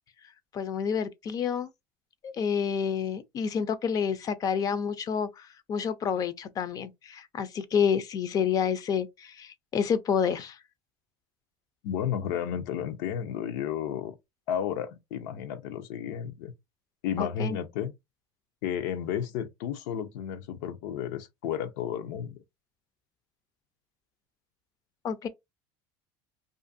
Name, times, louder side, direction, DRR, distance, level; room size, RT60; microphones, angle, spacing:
voice 1, 0.5-1.7 2.2-10.6 17.2-17.6 25.0-25.3, left 7 dB, 35° left, 0.4 m, -29 dB
voice 2, 11.8-14.1 14.5-16.5 17.0-17.9 18.6-22.4, left 9 dB, 80° left, 0.6 m, -32 dB
2.5 x 2.5 x 2.5 m
supercardioid pair, 125°, 11 cm